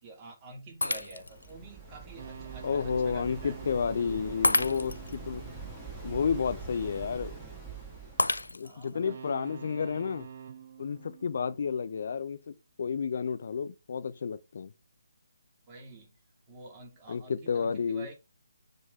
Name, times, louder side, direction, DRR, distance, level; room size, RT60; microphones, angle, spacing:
voice 1, 0.0-3.6 8.6-9.2 15.7-16.1 16.5-18.1, right 2 dB, 20° right, 2.6 m, -48 dB
Shatter, 0.8-1.5 2.1-2.2 4.4-5.2 8.2-8.9, left 2 dB, 75° left, 0.5 m, -29 dB
Waves surf, 1.0-8.5, right 4 dB, ahead, 2.4 m, -44 dB
sound 1, 2.2-6.6 8.9-12.2, right 8 dB, 40° right, 1.1 m, -47 dB
voice 2, 2.6-5.4 6.0-7.3 8.5-10.3 10.8-14.7 17.1-18.1, left 6 dB, 45° left, 0.9 m, -31 dB
7.3 x 4.1 x 4.8 m
figure-of-eight pair, 145°, 0 cm